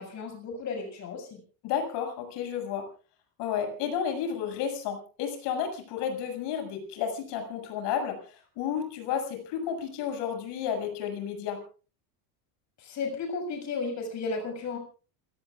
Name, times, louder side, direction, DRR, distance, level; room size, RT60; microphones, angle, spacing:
voice 1, 0.0-1.4 12.8-14.8, left 4 dB, 35° left, 4 dB, 7.0 m, -34 dB
voice 2, 1.6-2.9 3.4-11.6, left 8 dB, 60° left, 4 dB, 6.9 m, -32 dB
28.5 x 18.0 x 2.5 m, 0.38 s
cardioid pair, 160°, 47 cm